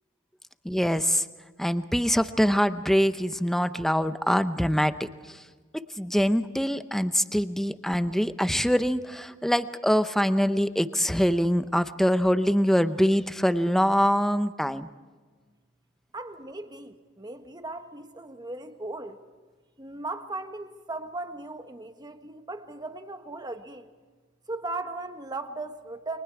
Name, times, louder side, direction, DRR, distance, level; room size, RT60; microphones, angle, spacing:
voice 1, 0.6-1.2 1.6-5.4 5.7-14.9, equal, ahead, 11 dB, 0.7 m, -24 dB
voice 2, 16.1-19.2 19.8-23.9 24.5-26.2, right 2 dB, 20° right, 7 dB, 1.4 m, -37 dB
29.5 x 24.0 x 4.8 m, 1.4 s
head